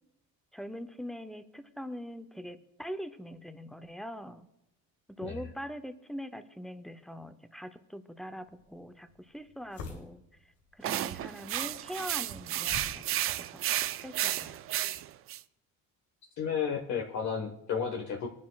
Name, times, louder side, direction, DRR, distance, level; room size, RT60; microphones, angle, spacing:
voice 1, 0.5-4.5 5.1-10.2 10.7-13.6 14.0-14.6, equal, ahead, 9 dB, 0.6 m, -42 dB
sound 1, 8.4-14.8, left 4 dB, 90° left, 2.9 m, -50 dB
sound 2, 10.8-15.4, right 13 dB, 40° right, 0.4 m, -33 dB
voice 2, 16.4-18.3, left 7 dB, 55° left, 1 dB, 1.3 m, -32 dB
22.5 x 10.5 x 2.3 m, 0.89 s
cardioid pair, 130°, 34 cm